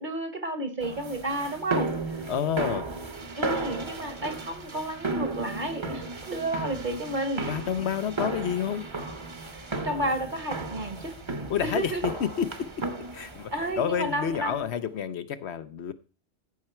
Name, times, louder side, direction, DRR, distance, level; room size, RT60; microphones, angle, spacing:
voice 1, 0.0-1.9 3.4-7.4 9.5-11.1 11.6-12.0 13.5-14.7, right 1 dB, 45° right, 1.3 m, -31 dB
sound 1, 0.8-14.7, right 3 dB, 25° right, 0.9 m, -35 dB
voice 2, 2.3-2.9 7.5-8.8 11.5-12.7 13.1-13.5 13.8-15.9, left 8 dB, 70° left, 1.0 m, -29 dB
14.5 x 5.8 x 4.4 m
omnidirectional pair, 1.2 m